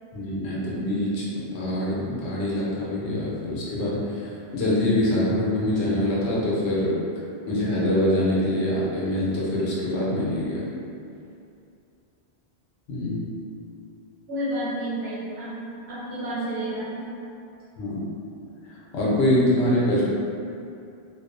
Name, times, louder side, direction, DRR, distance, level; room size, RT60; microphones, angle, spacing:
voice 1, 0.1-6.9 7.5-10.7 12.9-13.3 17.8-18.0 18.9-20.0, left 1 dB, 80° left, -6 dB, 0.9 m, -24 dB
voice 2, 14.3-15.5 15.9-17.0, right 1 dB, 75° right, -10 dB, 1.2 m, -30 dB
2.5 x 2.1 x 2.4 m, 2.6 s
omnidirectional pair, 1.1 m